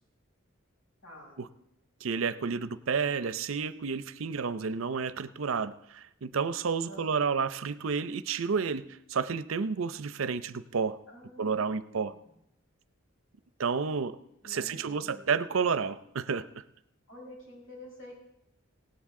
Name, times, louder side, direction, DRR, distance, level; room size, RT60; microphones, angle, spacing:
voice 1, 1.0-1.4 6.9-7.3 11.1-12.3 14.4-15.2 17.1-18.1, left 1 dB, 70° left, -2 dB, 6.5 m, -49 dB
voice 2, 2.0-8.8 9.1-11.0 11.4-12.1 13.6-14.2 14.4-16.5, right 5 dB, 80° right, 14 dB, 0.6 m, -30 dB
19.0 x 17.0 x 3.7 m, 0.80 s
head